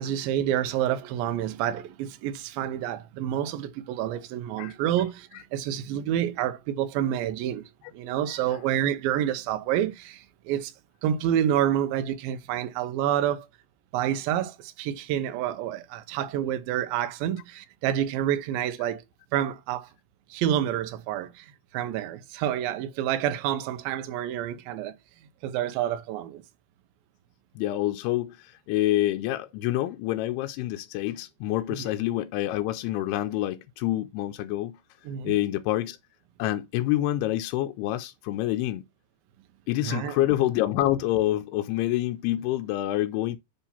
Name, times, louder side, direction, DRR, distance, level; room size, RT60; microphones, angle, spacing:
voice 1, 0.0-7.6 7.9-10.7 11.0-13.5 13.9-19.0 19.3-19.9 20.3-21.5 21.7-25.0 25.4-26.4 31.8-31.9 35.1-35.4 39.8-40.1, right 11 dB, 75° right, 2.3 m, -28 dB
voice 2, 27.6-34.8 35.2-36.0 36.4-38.8 39.7-43.4, left 14 dB, 85° left, 2.4 m, -27 dB
7.1 x 2.8 x 5.5 m
omnidirectional pair, 4.8 m